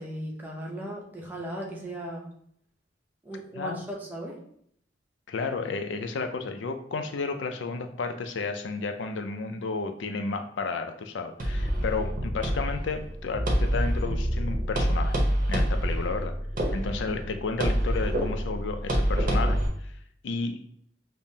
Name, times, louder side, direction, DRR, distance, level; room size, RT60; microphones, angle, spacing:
voice 1, 0.0-2.3 3.2-4.4, right 1 dB, 10° right, -2 dB, 0.6 m, -37 dB
voice 2, 5.3-15.2 15.5-16.3 16.7-19.6 20.2-20.6, left 4 dB, 70° left, 7 dB, 0.4 m, -32 dB
sound 1, 11.4-19.7, equal, 45° right, 0.7 m, -27 dB
5.3 x 2.0 x 2.7 m, 0.67 s
head